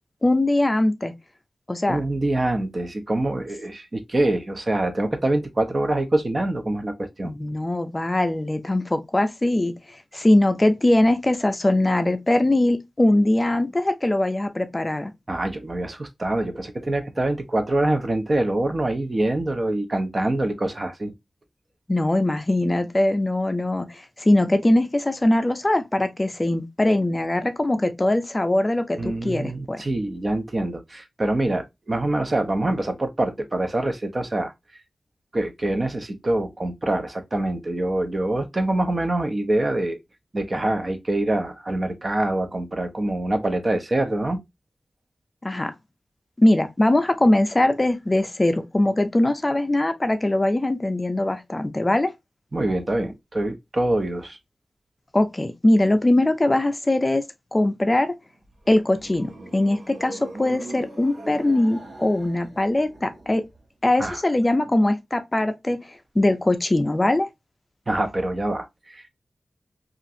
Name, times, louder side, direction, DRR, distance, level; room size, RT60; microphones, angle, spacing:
voice 1, 0.2-1.1 1.7-2.0 7.2-9.7 10.1-15.1 21.9-29.8 45.4-45.7 46.4-52.1 55.1-57.2 57.5-58.1 58.7-63.4 63.8-65.8 66.2-67.3, left 1 dB, 25° left, 0.4 m, -21 dB
voice 2, 1.9-7.3 15.3-21.1 29.0-34.5 35.3-40.0 40.3-44.4 52.5-54.4 64.0-64.2 67.9-69.1, right 1 dB, 40° right, 0.6 m, -25 dB
sound 1, 58.3-63.6, right 2 dB, 75° right, 1.0 m, -40 dB
2.9 x 2.4 x 2.6 m
wide cardioid pair, 95°, 0 cm